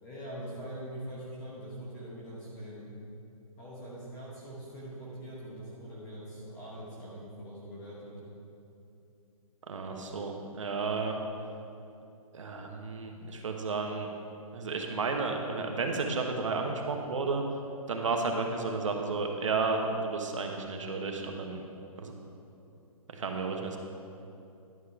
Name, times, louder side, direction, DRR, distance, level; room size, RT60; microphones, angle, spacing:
voice 1, 0.0-2.9 3.6-8.1 22.6-22.8, right 1 dB, 15° left, -7 dB, 1.1 m, -43 dB
voice 2, 9.7-11.2 12.3-14.1 14.5-17.4 17.9-21.6 22.0-22.2 23.1-23.8, right 4 dB, 60° right, 2 dB, 1.1 m, -32 dB
11.0 x 4.9 x 5.8 m, 2.7 s
hypercardioid pair, 175°, 19 cm